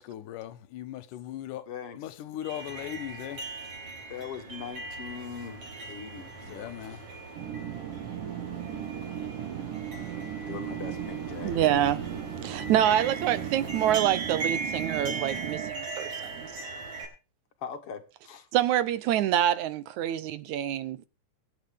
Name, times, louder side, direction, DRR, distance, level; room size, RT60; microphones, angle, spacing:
voice 1, 0.0-1.7 2.0-3.4 6.4-7.0, left 12 dB, 85° left, 2.5 m, -38 dB
voice 2, 1.7-2.1 4.1-7.0 10.5-11.9 17.6-18.5, left 7 dB, 55° left, 2.0 m, -41 dB
sound 1, 2.4-17.0, right 4 dB, 50° right, 5.5 m, -39 dB
sound 2, 7.4-15.7, right 10 dB, 90° right, 3.2 m, -37 dB
voice 3, 11.4-12.0 12.4-16.6 18.5-21.1, right 11 dB, 75° right, 2.1 m, -26 dB
22.5 x 9.2 x 3.6 m
omnidirectional pair, 3.6 m